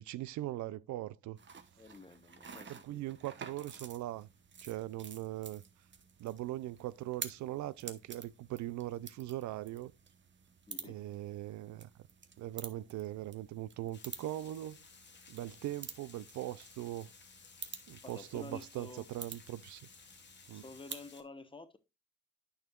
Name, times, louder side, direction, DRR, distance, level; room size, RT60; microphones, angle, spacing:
voice 1, 0.0-1.4 2.7-4.3 4.6-5.6 6.2-9.9 10.8-11.9 12.4-14.8 15.3-17.1 17.9-19.8 20.5-20.6, right 14 dB, 70° right, 0.4 m, -40 dB
sound 1, 1.4-21.1, right 6 dB, 40° right, 1.0 m, -51 dB
voice 2, 1.8-3.1 10.7-11.0 18.0-19.1 20.5-21.8, left 3 dB, 15° left, 0.9 m, -50 dB
Water, 13.9-21.2, left 5 dB, 35° left, 1.4 m, -58 dB
9.4 x 6.5 x 2.3 m
cardioid pair, 90°, 30 cm